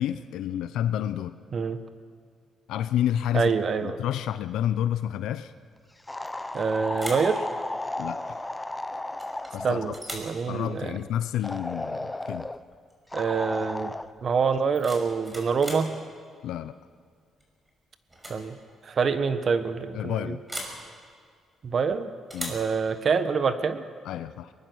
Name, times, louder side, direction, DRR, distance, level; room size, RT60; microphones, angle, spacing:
voice 1, 0.0-1.4 2.7-3.5 3.8-5.5 8.0-8.4 9.5-9.8 10.5-12.5 16.4-16.8 19.9-20.4 22.3-22.6 24.0-24.5, left 11 dB, 85° left, 12 dB, 0.6 m, -29 dB
voice 2, 3.3-4.0 6.5-7.4 9.6-11.0 13.1-13.9 14.2-15.9 18.3-18.6 18.8-20.3 21.6-22.1 22.5-23.8, right 5 dB, 50° right, 10 dB, 1.4 m, -26 dB
sound 1, 6.1-10.1 11.4-12.6 13.1-14.1, left 2 dB, 15° left, 0.9 m, -34 dB
sound 2, 6.2-6.6 6.9-7.3 9.2-9.5 9.9-10.4 12.2-12.4 12.7-13.1 14.5-15.9 17.4-17.7 18.1-18.4 18.7-18.8 20.5-20.8 22.3-22.7, right 1 dB, 15° right, 5.6 m, -39 dB
23.0 x 20.0 x 6.4 m, 2.1 s
cardioid pair, 90°, 0 cm